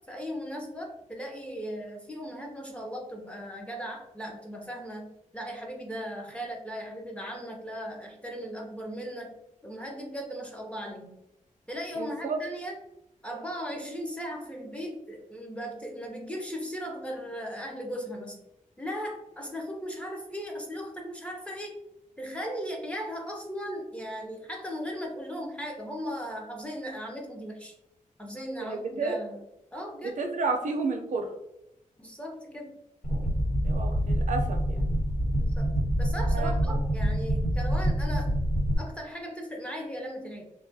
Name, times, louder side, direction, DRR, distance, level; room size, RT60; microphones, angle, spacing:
voice 1, 0.1-9.4 9.6-11.2 11.7-12.8 13.2-18.4 18.8-21.7 22.2-27.7 28.2-29.4 29.7-30.2 32.0-32.7 35.4-35.7 36.0-38.4 38.8-40.4, equal, 10° left, 0 dB, 0.4 m, -37 dB
voice 2, 12.0-12.4 28.6-29.2 30.0-31.3 33.6-34.8 36.3-36.8, right 4 dB, 65° right, 3 dB, 0.4 m, -31 dB
sound 1, 33.0-38.8, equal, 80° left, 1.3 m, -26 dB
2.3 x 2.2 x 2.5 m, 0.83 s
wide cardioid pair, 165°, 14 cm